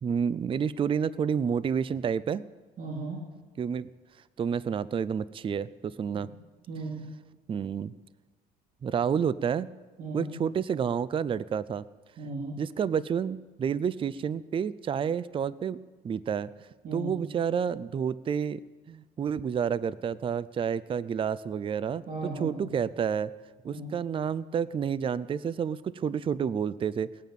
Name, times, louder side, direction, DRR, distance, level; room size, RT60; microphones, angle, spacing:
voice 1, 0.0-2.5 3.6-3.9 4.4-6.3 7.5-7.9 8.8-9.7 10.1-11.8 12.6-15.8 16.0-16.5 16.9-18.6 18.9-23.3 23.6-27.1, right 7 dB, 30° right, 18 dB, 0.5 m, -29 dB
voice 2, 2.8-3.2 6.7-7.1 10.0-10.3 12.2-12.6 16.8-17.1 22.1-22.7 23.6-23.9, right 2 dB, 55° right, 0 dB, 2.9 m, -36 dB
19.0 x 9.3 x 7.4 m, 1.3 s
cardioid pair, 110°, 17 cm